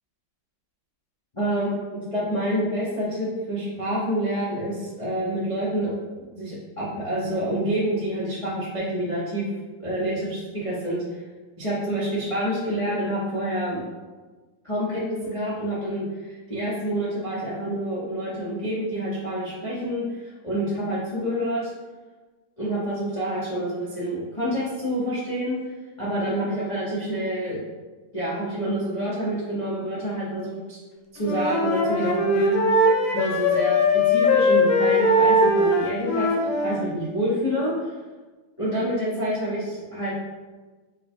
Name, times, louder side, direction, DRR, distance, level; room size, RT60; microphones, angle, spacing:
voice 1, 1.3-5.9 6.3-9.4 9.8-11.2 11.6-13.8 14.6-21.7 22.6-27.6 28.1-30.8 31.1-32.8 33.1-36.3 36.6-38.0 38.6-40.1, right 1 dB, 55° left, -9 dB, 0.3 m, -27 dB
Wind instrument woodwind instrument, 31.2-36.9, left 1 dB, 90° left, 1.5 m, -20 dB
4.6 x 2.2 x 4.4 m, 1.3 s
omnidirectional pair, 2.3 m